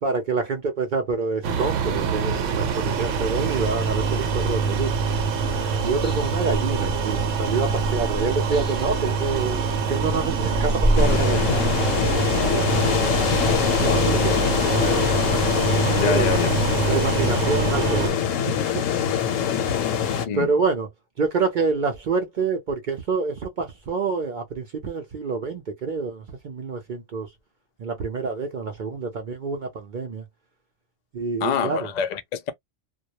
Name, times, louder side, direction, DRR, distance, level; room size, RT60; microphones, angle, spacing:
voice 1, 0.0-4.9 5.8-9.6 9.9-11.6 12.1-12.7 13.1-14.5 16.0-16.3 16.9-18.8 19.4-19.5 20.3-20.9 21.2-27.3 27.8-30.2 31.1-31.9, right 4 dB, 55° right, 0.5 m, -27 dB
sound 1, 1.4-18.1, right 5 dB, 80° right, 0.9 m, -25 dB
sound 2, 5.4-16.5, equal, 5° left, 0.7 m, -31 dB
sound 3, 11.0-20.3, left 8 dB, 90° left, 1.0 m, -23 dB
voice 2, 13.8-14.3 15.9-16.5 20.2-20.5 31.4-32.5, left 7 dB, 65° left, 0.4 m, -26 dB
2.2 x 2.1 x 2.7 m
omnidirectional pair, 1.3 m